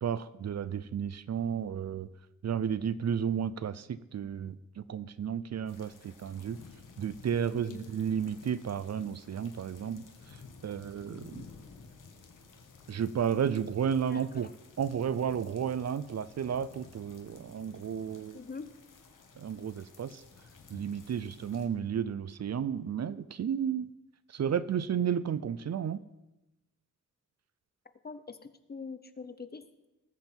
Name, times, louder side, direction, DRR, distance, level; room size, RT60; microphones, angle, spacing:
voice 1, 0.0-2.1 2.4-6.6 7.0-10.4 10.6-11.4 12.9-14.5 14.8-18.4 19.4-20.2 20.7-23.9 24.3-26.0, right 8 dB, 60° right, 16 dB, 0.5 m, -32 dB
sound 1, 5.7-21.7, left 4 dB, 85° left, 1.7 m, -54 dB
voice 2, 7.4-7.9 14.1-14.5 18.3-18.7 28.0-29.9, left 4 dB, 30° left, 12 dB, 0.8 m, -44 dB
19.0 x 7.9 x 4.5 m, 0.97 s
wide cardioid pair, 110°, 31 cm